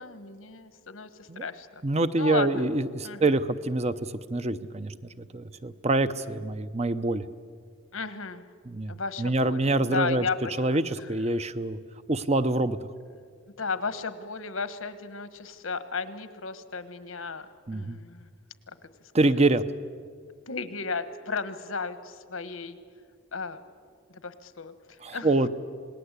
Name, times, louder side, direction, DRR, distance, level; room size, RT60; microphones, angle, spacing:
voice 1, 0.0-1.8 2.2-2.7 3.0-3.3 7.9-8.4 8.9-9.6 9.8-10.8 13.6-17.5 17.7-18.3 20.5-22.8 23.3-23.6 24.2-24.7 25.1-25.3, left 4 dB, 85° left, 12 dB, 1.4 m, -34 dB
voice 2, 1.8-3.9 4.3-7.3 8.6-10.3 10.6-11.8 12.1-12.8 17.7-18.0 19.1-19.6 25.0-25.5, right 2 dB, 30° right, 12 dB, 0.7 m, -25 dB
27.5 x 19.5 x 8.2 m, 2.1 s
head